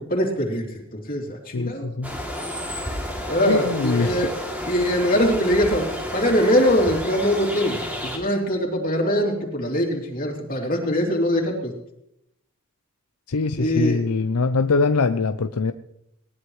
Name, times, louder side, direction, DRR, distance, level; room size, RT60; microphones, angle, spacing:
voice 1, 0.1-0.7 0.9-1.9 3.3-4.3 4.7-5.9 6.1-11.7 13.6-14.0, equal, 40° left, 0 dB, 3.2 m, -22 dB
voice 2, 1.5-2.2 3.5-4.3 13.3-15.7, left 4 dB, 90° left, 9 dB, 0.6 m, -23 dB
sound 1, 2.0-8.2, left 1 dB, 5° right, 2.8 m, -31 dB
20.5 x 18.5 x 3.2 m, 0.79 s
head